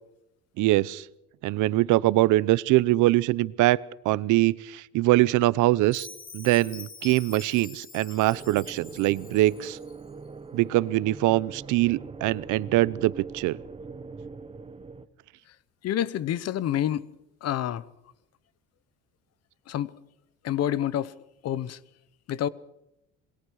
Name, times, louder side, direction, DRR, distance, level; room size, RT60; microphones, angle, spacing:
voice 1, 0.6-1.0 1.4-6.1 6.3-9.8 10.5-13.6, right 17 dB, 80° right, 0.8 m, -23 dB
Chime, 5.9-10.0, left 5 dB, 30° left, 2.0 m, -45 dB
sound 1, 8.3-15.1, right 4 dB, 20° right, 1.2 m, -42 dB
voice 2, 15.8-17.0 17.4-17.8 19.7-19.9 20.4-21.2 21.4-21.8 22.3-22.5, left 11 dB, 55° left, 1.0 m, -28 dB
27.0 x 21.5 x 4.8 m
cardioid pair, 135°, 30 cm